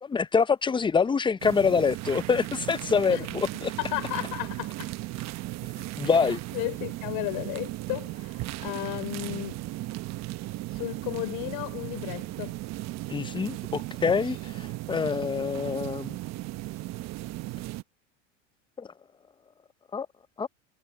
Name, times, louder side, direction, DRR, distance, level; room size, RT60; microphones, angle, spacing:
voice 1, 0.0-3.7 5.8-6.4 13.1-16.2 18.8-18.9 19.9-20.1 20.4-20.5, left 5 dB, 15° left, 0.6 m, -26 dB
sound 1, 1.4-17.8, right 18 dB, 45° right, 1.0 m, -36 dB
voice 2, 3.8-5.3 6.5-9.6 10.7-12.5, left 23 dB, 60° left, 4.9 m, -34 dB
hypercardioid pair, 95°, 38 cm